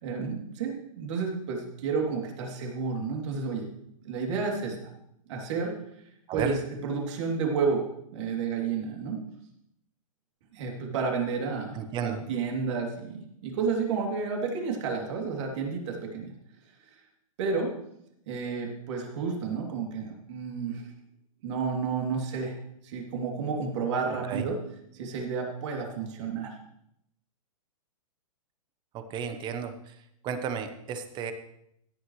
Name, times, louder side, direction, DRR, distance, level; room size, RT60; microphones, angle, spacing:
voice 1, 0.0-3.7 4.0-4.9 5.3-5.7 6.3-7.8 8.1-9.2 10.5-16.3 17.4-17.7 18.3-20.8 21.4-22.5 22.8-24.6 24.9-26.5, right 5 dB, 55° right, 0 dB, 3.1 m, -31 dB
voice 2, 11.7-12.2 24.3-24.5 28.9-29.9 30.2-31.3, right 7 dB, 25° right, 9 dB, 1.1 m, -33 dB
16.0 x 9.3 x 3.2 m, 0.77 s
hypercardioid pair, 135°, 18 cm